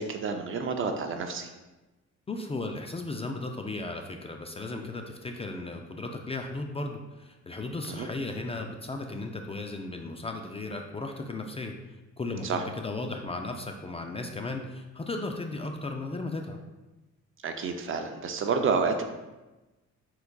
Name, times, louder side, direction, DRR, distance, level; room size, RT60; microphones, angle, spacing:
voice 1, 0.0-1.5 7.9-8.1 12.4-12.6 17.4-19.0, right 5 dB, 45° right, 6 dB, 0.5 m, -29 dB
voice 2, 2.3-16.6, left 2 dB, 20° left, 3 dB, 0.4 m, -35 dB
4.5 x 3.9 x 2.2 m, 1.1 s
cardioid pair, 90°, 30 cm